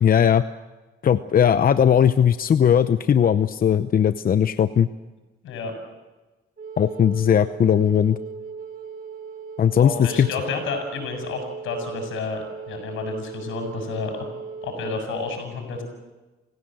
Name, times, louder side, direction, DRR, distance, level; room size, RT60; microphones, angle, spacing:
voice 1, 0.0-0.4 1.0-4.9 6.8-8.2 9.6-10.3, left 8 dB, 45° left, 12 dB, 0.8 m, -18 dB
voice 2, 5.4-5.7 9.8-14.2 14.6-15.8, left 4 dB, 85° left, 5 dB, 7.1 m, -30 dB
Wind instrument woodwind instrument, 6.6-15.0, right 5 dB, 45° right, 2.3 m, -37 dB
28.5 x 16.5 x 7.8 m, 1.2 s
cardioid pair, 90°, 20 cm